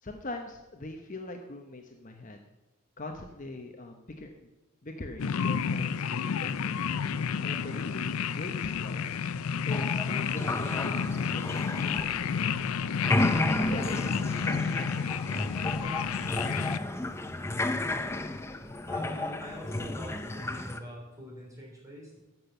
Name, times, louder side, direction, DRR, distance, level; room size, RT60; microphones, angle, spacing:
voice 1, 0.0-2.4 3.0-4.5 4.8-6.9 7.4-9.0 9.7-12.9 13.6-16.0, left 2 dB, 35° left, 4 dB, 0.8 m, -42 dB
sound 1, 5.2-16.8, left 6 dB, 80° left, 0.4 m, -31 dB
sound 2, 9.7-12.7 12.9-20.8, left 2 dB, 10° left, 0.5 m, -32 dB
voice 2, 18.9-22.2, equal, 15° right, -3 dB, 3.3 m, -44 dB
13.5 x 6.0 x 6.8 m, 1.1 s
head